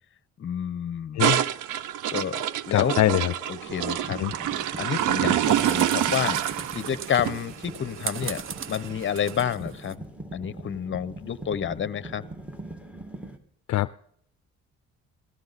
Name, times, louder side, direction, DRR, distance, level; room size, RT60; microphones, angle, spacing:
voice 1, 0.4-1.3 2.1-3.0 3.5-4.2 4.5-6.4 6.7-8.4 8.7-10.0 10.3-12.2, left 8 dB, 40° left, 17 dB, 0.8 m, -29 dB
sound 1, 1.2-9.4, right 11 dB, 85° right, 0.7 m, -27 dB
voice 2, 2.7-3.3 4.2-4.3 13.7-14.0, left 15 dB, 65° left, 16 dB, 0.5 m, -23 dB
sound 2, 2.8-2.9 3.4-13.4, right 2 dB, 5° right, 1.8 m, -42 dB
sound 3, 5.0-9.9, right 7 dB, 45° right, 0.8 m, -38 dB
17.5 x 13.0 x 4.1 m, 0.69 s
cardioid pair, 90°, 30 cm